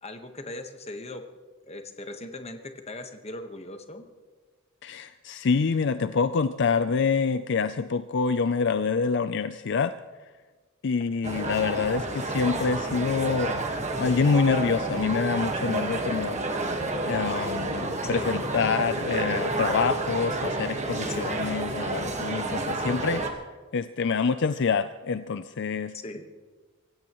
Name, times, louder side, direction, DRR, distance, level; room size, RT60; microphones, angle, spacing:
voice 1, 0.0-1.2 1.7-4.1 18.1-18.3 21.2-21.3 26.0-26.3, left 1 dB, 30° left, 6 dB, 1.2 m, -39 dB
voice 2, 4.8-9.9 10.8-13.6 13.9-16.4 17.1-23.4 23.7-25.9, left 5 dB, 60° left, 11 dB, 0.4 m, -26 dB
sound 1, 11.2-23.3, right 2 dB, 35° right, 1.5 m, -30 dB
25.0 x 16.0 x 3.1 m, 1.4 s
head